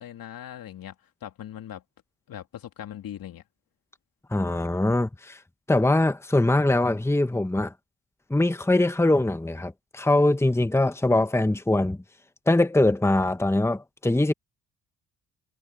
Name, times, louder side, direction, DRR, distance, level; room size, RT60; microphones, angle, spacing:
voice 1, 0.0-1.8 2.3-3.4, left 11 dB, 65° left, 3.1 m, -40 dB
voice 2, 4.3-5.4 5.7-7.7 8.3-12.0 12.5-14.3, left 2 dB, 5° left, 1.4 m, -22 dB
supercardioid pair, 65°, 37 cm